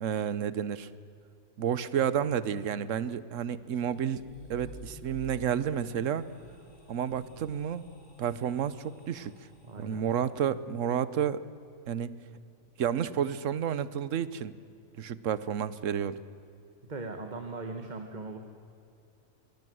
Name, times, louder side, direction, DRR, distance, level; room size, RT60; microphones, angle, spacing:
voice 1, 0.0-0.9 1.6-4.2 4.5-6.3 6.9-7.8 8.2-9.3 9.8-11.4 11.9-12.1 12.8-14.5 15.0-16.2, right 8 dB, 65° right, 16 dB, 1.2 m, -30 dB
sound 1, 3.4-10.3, left 2 dB, 35° left, 2.5 m, -55 dB
sound 2, 4.1-6.8, equal, 15° left, 4.1 m, -51 dB
voice 2, 9.6-10.0 16.8-18.4, right 3 dB, 35° right, 5 dB, 1.6 m, -39 dB
25.0 x 20.5 x 7.9 m, 2.7 s
omnidirectional pair, 1.5 m